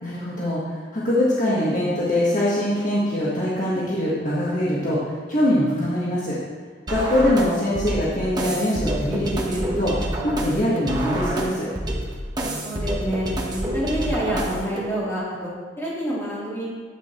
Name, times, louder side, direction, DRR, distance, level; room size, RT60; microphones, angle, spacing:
voice 1, 0.0-6.4 6.9-9.9 10.2-11.7, left 1 dB, 45° left, -7 dB, 1.6 m, -23 dB
sound 1, 6.9-14.9, right 1 dB, 20° right, 1.1 m, -28 dB
voice 2, 12.6-15.5 15.8-16.7, equal, 15° left, -8 dB, 3.1 m, -27 dB
9.8 x 8.0 x 4.4 m, 1.5 s
head